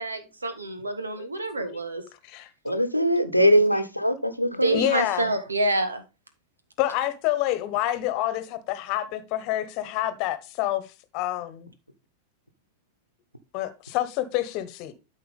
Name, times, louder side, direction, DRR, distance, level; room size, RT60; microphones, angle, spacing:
voice 1, 0.0-2.0 4.6-6.0, right 2 dB, 75° right, 1.5 m, -27 dB
voice 2, 2.6-4.8, equal, 90° left, 1.0 m, -21 dB
voice 3, 4.7-5.2 6.8-10.8 11.1-11.7 13.5-14.9, left 13 dB, 40° left, 1.2 m, -27 dB
12.5 x 4.5 x 3.5 m
figure-of-eight pair, 90°, 0 cm